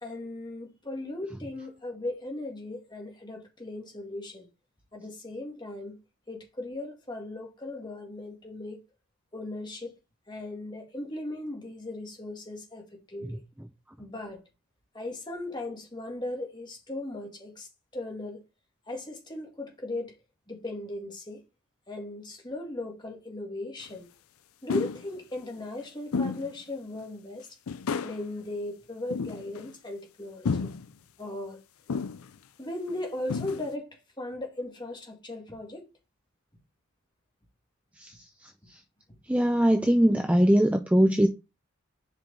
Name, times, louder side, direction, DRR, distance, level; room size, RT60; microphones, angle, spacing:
voice 1, 0.0-4.5 4.9-6.0 6.3-8.8 9.3-9.9 10.3-13.4 14.0-14.4 14.9-17.7 17.9-18.4 18.9-20.1 20.5-21.4 21.9-24.1 24.6-27.5 28.0-30.7 31.2-31.6 32.6-35.9, left 2 dB, 20° left, 1.9 m, -37 dB
sound 1, 23.9-24.0 24.7-25.1 26.1-26.5 26.9-27.0 27.7-28.2 29.1-29.7 30.4-30.9 31.9-32.3 32.9-33.0 33.3-33.7, left 5 dB, 80° left, 0.5 m, -31 dB
voice 2, 39.3-41.3, equal, 5° right, 0.4 m, -21 dB
6.7 x 5.1 x 3.8 m
head